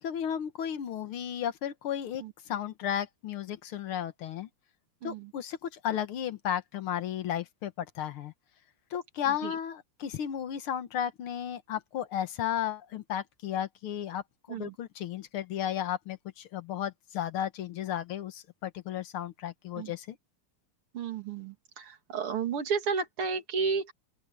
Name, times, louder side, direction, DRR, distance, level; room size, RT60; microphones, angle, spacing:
voice 1, 0.0-4.5 5.0-8.3 8.9-14.2 14.5-20.2, left 10 dB, 75° left, 2.0 m, -34 dB
voice 2, 5.0-5.3 9.3-9.6 14.5-14.8 19.8-19.9 20.9-23.9, right 5 dB, 85° right, 3.1 m, -32 dB
open air
omnidirectional pair, 2.4 m